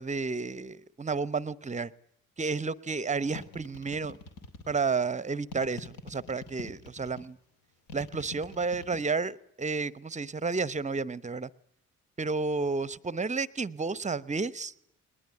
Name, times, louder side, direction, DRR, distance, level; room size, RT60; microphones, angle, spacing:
voice 1, 0.0-1.9 2.4-4.2 4.7-7.4 7.9-11.5 12.2-14.7, right 4 dB, 20° right, 21 dB, 0.9 m, -31 dB
sound 1, 3.3-4.9 5.5-7.3 7.9-9.0, left 4 dB, 55° left, 2.6 m, -44 dB
20.0 x 20.0 x 9.4 m, 0.75 s
figure-of-eight pair, 40°, 40 cm